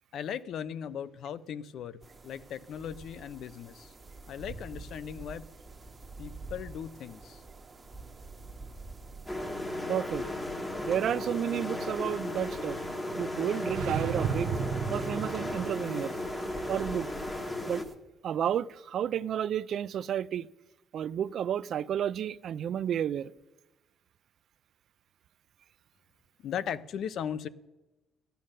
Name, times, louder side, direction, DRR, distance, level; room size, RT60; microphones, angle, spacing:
voice 1, 0.1-3.9 4.3-5.5 6.2-7.4 26.4-27.5, left 8 dB, 60° left, 0.5 m, -38 dB
sound 1, 2.0-18.0, right 3 dB, 20° right, 1.1 m, -49 dB
sound 2, 9.3-17.8, left 1 dB, 15° left, 1.1 m, -35 dB
voice 2, 9.9-10.3 10.8-12.8 13.2-14.5 14.9-16.1 16.7-17.1 17.7-17.8 18.2-20.5 20.9-23.3, right 9 dB, 50° right, 0.3 m, -31 dB
sound 3, 13.6-15.8, right 6 dB, 75° right, 0.8 m, -33 dB
14.5 x 9.2 x 6.5 m
cardioid pair, 140°, 0 cm